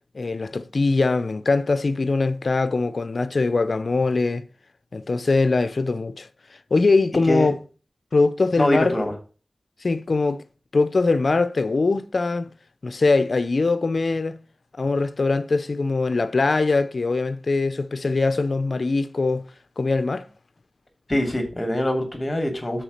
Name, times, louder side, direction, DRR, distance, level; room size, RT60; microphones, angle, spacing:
voice 1, 0.1-4.5 4.9-6.3 6.7-7.6 8.1-8.9 9.8-10.4 10.7-12.5 12.8-14.4 14.8-19.4 19.8-20.3, left 3 dB, 70° left, 0.6 m, -22 dB
voice 2, 8.6-9.1 21.1-22.8, left 1 dB, 35° left, 2.5 m, -23 dB
6.2 x 4.9 x 6.5 m
cardioid pair, 45°, 0 cm